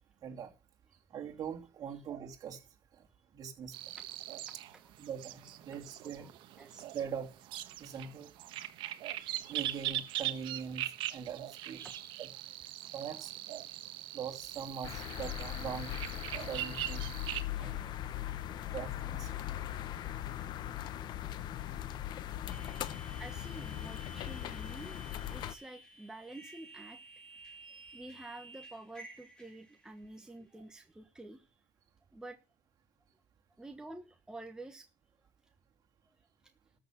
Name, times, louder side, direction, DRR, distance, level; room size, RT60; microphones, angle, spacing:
voice 1, 0.2-0.5 1.1-2.6 3.3-3.7 5.0-6.4 6.9-7.3 7.8-8.3 9.5-10.8 11.1-12.3 12.9-13.3 14.1-15.9 16.5-17.0 17.6-17.8 18.7-19.3 27.7-27.8 30.5-30.6, right 7 dB, 45° right, 2.8 m, -42 dB
sound 1, 3.7-17.4, right 14 dB, 65° right, 1.2 m, -41 dB
voice 2, 3.9-4.4 4.7-4.9 6.0-6.3 6.6-6.9 8.6-8.7 14.0-14.1 17.5-18.1 22.6-22.7 23.2-27.0 27.9-31.5 32.1-32.4 33.6-34.9 35.4-35.5 36.1-36.2, right 2 dB, 10° right, 1.2 m, -49 dB
sound 2, 14.8-25.5, left 12 dB, 55° left, 0.8 m, -39 dB
sound 3, 22.5-30.1, right 1 dB, 10° left, 4.4 m, -53 dB
13.5 x 6.7 x 5.8 m
cardioid pair, 120°, 9 cm